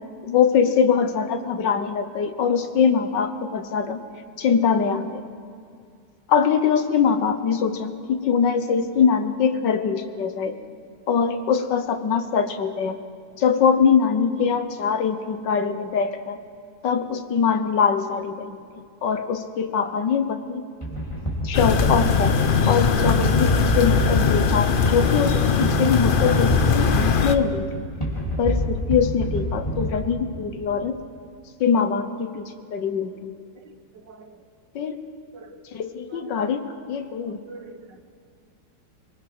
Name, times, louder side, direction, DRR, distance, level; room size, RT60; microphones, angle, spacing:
voice 1, 0.2-4.0 4.4-5.2 6.3-10.5 11.1-13.0 13.4-16.4 16.8-18.6 19.0-20.6 21.4-22.4 22.7-27.8 28.4-31.0 31.6-32.4 32.7-33.3 34.8-35.0 35.7-37.4, left 6 dB, 75° left, 9 dB, 1.8 m, -22 dB
sound 1, 20.8-30.4, equal, 15° left, 3.1 m, -26 dB
sound 2, 21.5-27.3, left 6 dB, 45° left, 0.6 m, -21 dB
voice 2, 33.5-34.4 35.3-35.6 36.1-36.4 37.2-38.0, right 4 dB, 75° right, 8 dB, 1.9 m, -45 dB
24.0 x 20.5 x 6.2 m, 2.3 s
omnidirectional pair, 2.0 m